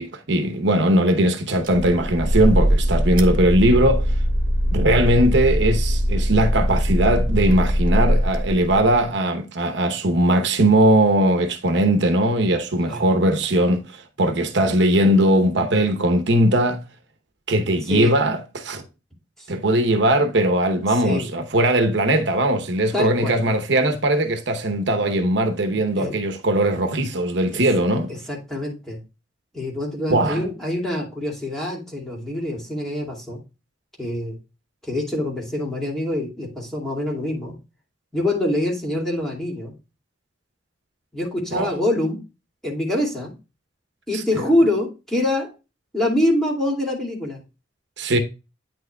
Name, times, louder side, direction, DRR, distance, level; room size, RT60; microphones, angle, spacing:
voice 1, 0.0-4.1 4.7-16.8 17.5-18.8 19.5-28.1 30.1-30.4 41.5-41.7 44.1-44.2 48.0-48.2, right 1 dB, 70° right, 0.9 m, -19 dB
sound 1, 1.6-9.0, equal, 50° right, 1.5 m, -21 dB
voice 2, 22.9-23.4 26.0-26.1 27.5-27.6 28.1-29.0 29.5-33.4 34.0-34.4 34.8-37.5 38.1-39.7 41.1-42.2 42.6-43.3 44.1-45.5 45.9-47.4, left 1 dB, 5° left, 2.4 m, -25 dB
9.1 x 6.2 x 2.3 m
head